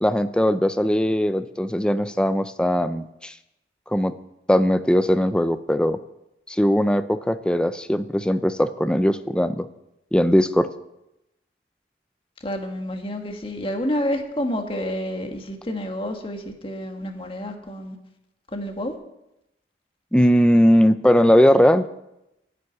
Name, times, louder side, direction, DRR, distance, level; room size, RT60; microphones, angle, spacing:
voice 1, 0.0-3.3 3.9-4.1 4.5-6.0 6.5-9.7 10.1-10.7 20.1-21.9, equal, 5° left, 11 dB, 0.5 m, -19 dB
voice 2, 12.4-18.0 18.5-18.9, equal, 30° left, 3 dB, 1.5 m, -29 dB
11.0 x 7.4 x 9.6 m, 0.88 s
head